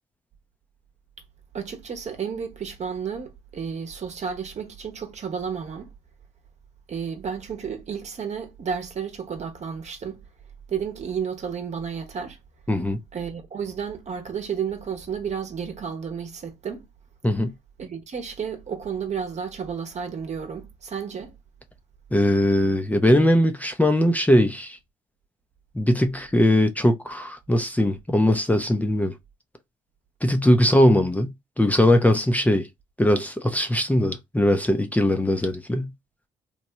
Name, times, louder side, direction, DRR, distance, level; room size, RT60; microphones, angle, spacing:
voice 1, 1.5-5.9 6.9-10.2 10.7-12.4 13.1-16.9 17.8-21.3, right 7 dB, 45° right, 1.0 m, -32 dB
voice 2, 12.7-13.0 17.2-17.5 22.1-24.8 25.7-29.1 30.2-31.3 31.6-32.7 33.0-35.9, left 1 dB, 10° left, 0.6 m, -20 dB
3.0 x 2.2 x 2.8 m
hypercardioid pair, 50°, 16 cm